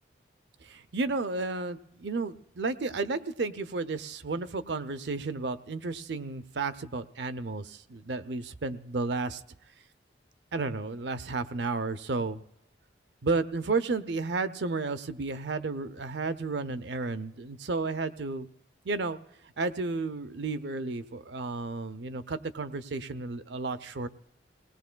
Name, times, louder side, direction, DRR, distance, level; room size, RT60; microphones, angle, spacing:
voice 1, 0.6-9.4 10.5-12.4 13.2-18.5 18.8-19.2 19.6-24.1, right 3 dB, 70° right, 12 dB, 0.6 m, -32 dB
28.5 x 18.5 x 2.2 m, 0.89 s
head